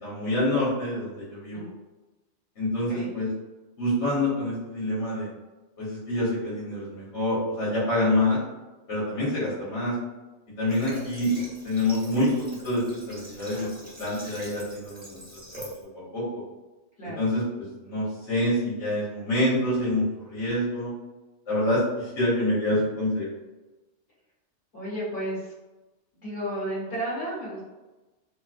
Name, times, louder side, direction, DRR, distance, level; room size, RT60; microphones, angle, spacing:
voice 1, 0.0-1.7 2.6-3.3 3.8-5.3 5.8-8.4 8.9-9.9 10.6-11.3 11.6-13.7 14.0-15.2 15.9-16.2 17.2-20.9 21.5-23.3, left 1 dB, 80° left, -9 dB, 1.5 m, -26 dB
Water / Water tap faucet, 10.7-15.8, right 1 dB, 10° right, 0.7 m, -43 dB
voice 2, 24.7-25.5 26.1-27.6, right 1 dB, 55° left, -8 dB, 1.8 m, -32 dB
3.0 x 2.6 x 2.4 m, 1.1 s
omnidirectional pair, 1.2 m